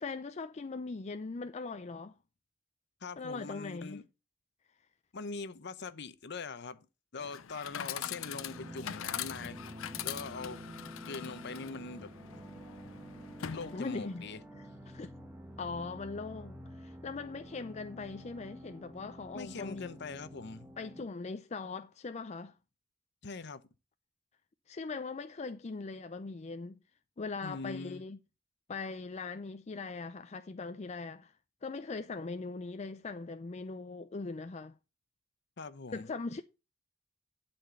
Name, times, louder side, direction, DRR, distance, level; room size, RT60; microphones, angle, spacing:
voice 1, 0.0-2.1 3.2-4.0 13.7-14.2 14.5-15.1 15.6-19.9 20.8-22.5 24.7-26.8 27.2-28.2 28.7-31.3 31.6-34.8 35.9-36.4, left 4 dB, 35° left, 0.4 m, -40 dB
voice 2, 3.0-4.1 5.1-6.9 7.1-9.6 10.0-10.6 11.1-12.1 13.5-14.4 19.3-20.7 23.2-23.6 27.4-28.0 35.6-36.1, left 4 dB, 55° left, 0.8 m, -42 dB
Chatter / Coin (dropping), 7.2-14.2, left 10 dB, 85° left, 0.6 m, -42 dB
sound 1, 8.0-21.0, equal, 10° right, 1.1 m, -49 dB
11.0 x 4.4 x 6.6 m
head